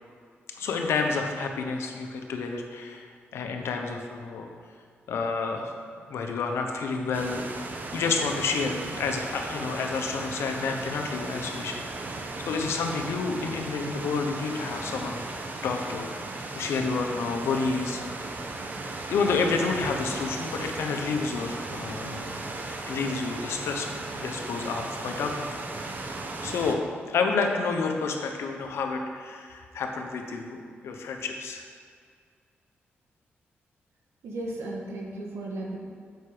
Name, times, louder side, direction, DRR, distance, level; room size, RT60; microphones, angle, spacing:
voice 1, 0.6-3.1 3.3-4.5 5.1-5.7 6.1-7.7 7.9-11.8 12.5-16.1 16.5-18.0 19.1-22.3 22.9-25.5 26.4-26.8 27.1-31.6, left 4 dB, 90° left, 3 dB, 0.9 m, -29 dB
sound 1, 7.1-26.7, right 2 dB, 45° right, 0.9 m, -36 dB
voice 2, 34.2-35.8, right 2 dB, 85° right, -1 dB, 1.5 m, -35 dB
8.0 x 5.7 x 5.0 m, 2.1 s
cardioid pair, 90°, 4 cm